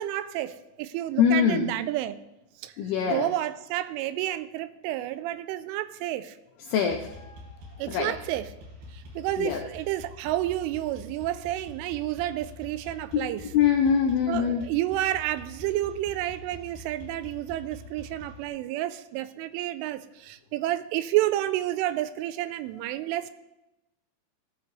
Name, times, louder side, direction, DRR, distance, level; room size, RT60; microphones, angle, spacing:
voice 1, 0.0-2.2 2.6-2.7 3.1-6.4 7.8-8.5 8.9-13.5 14.3-23.3, right 14 dB, 85° right, 3.1 m, -30 dB
voice 2, 1.2-1.7 2.8-3.3 6.7-7.3 7.9-8.1 9.4-9.6 13.5-14.6, left 8 dB, 80° left, 2.3 m, -23 dB
sound 1, 6.8-18.5, left 1 dB, 55° right, 3.6 m, -45 dB
17.0 x 13.0 x 3.3 m
omnidirectional pair, 5.6 m